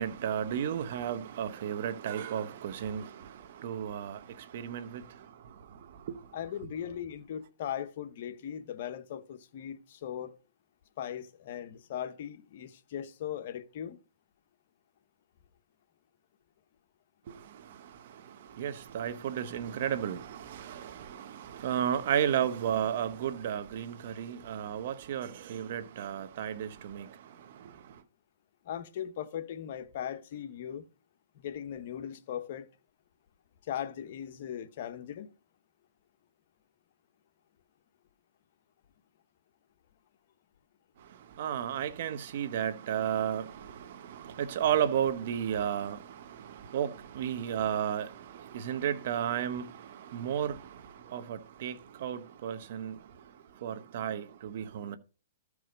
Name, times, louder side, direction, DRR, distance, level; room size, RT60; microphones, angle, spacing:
voice 1, 0.0-6.4 17.3-28.0 41.0-55.0, right 9 dB, 55° right, 1.1 m, -34 dB
voice 2, 6.3-10.3 11.0-14.0 28.6-30.9 31.4-32.7 33.7-35.3, left 9 dB, 55° left, 1.0 m, -39 dB
13.0 x 4.8 x 5.2 m
hypercardioid pair, 145°, 0 cm